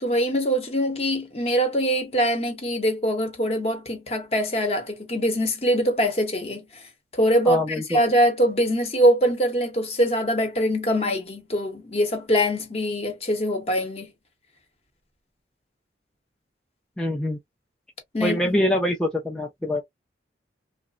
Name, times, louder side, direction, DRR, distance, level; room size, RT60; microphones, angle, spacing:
voice 1, 0.0-6.7 7.1-14.1 18.1-18.6, equal, 35° left, 0.8 m, -23 dB
voice 2, 7.5-8.0 17.0-17.4 18.2-19.8, left 1 dB, 5° left, 0.4 m, -24 dB
3.0 x 2.0 x 2.3 m
head